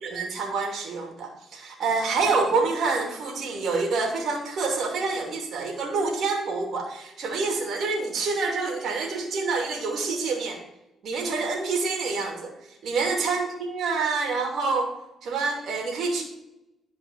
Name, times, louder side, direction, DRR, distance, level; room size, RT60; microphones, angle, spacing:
voice 1, 0.0-10.6 11.0-14.9 15.2-16.2, right 4 dB, 65° right, 2 dB, 2.6 m, -27 dB
11.5 x 4.8 x 7.9 m, 0.88 s
cardioid pair, 90°, 0 cm